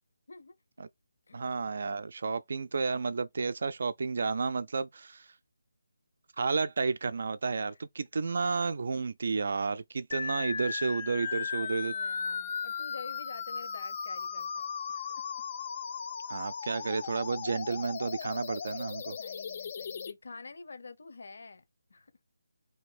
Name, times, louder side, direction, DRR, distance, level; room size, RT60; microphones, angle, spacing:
voice 1, 1.3-5.3 6.4-11.9 16.3-19.2, right 4 dB, 50° right, 0.3 m, -32 dB
sound 1, 10.1-20.1, left 6 dB, 30° left, 0.4 m, -37 dB
voice 2, 11.2-15.3 19.2-21.6 21.9-22.1, left 4 dB, 65° left, 0.7 m, -48 dB
2.6 x 2.6 x 3.4 m
figure-of-eight pair, 170°, 0 cm